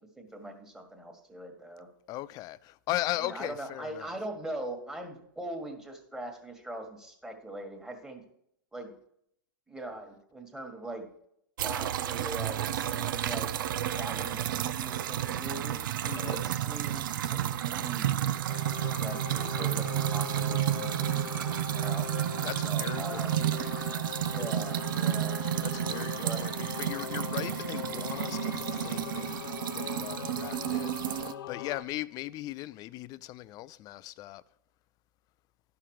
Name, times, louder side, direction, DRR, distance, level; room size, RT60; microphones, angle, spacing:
voice 1, 0.2-1.9 3.2-8.2 8.7-9.0 9.7-11.1 11.6-13.5 14.0-15.8 16.1-18.3 19.0-22.1 22.6-23.3 24.2-25.4 26.2-26.4, right 1 dB, 5° right, 1.6 m, -41 dB
voice 2, 2.1-4.2 16.0-16.5 22.4-23.7 25.6-34.4, left 16 dB, 35° left, 0.4 m, -38 dB
sound 1, 11.6-31.3, right 11 dB, 75° right, 0.6 m, -31 dB
Singing / Musical instrument, 18.5-31.8, left 8 dB, 85° left, 0.8 m, -41 dB
11.5 x 5.9 x 4.8 m
hypercardioid pair, 120°, 11 cm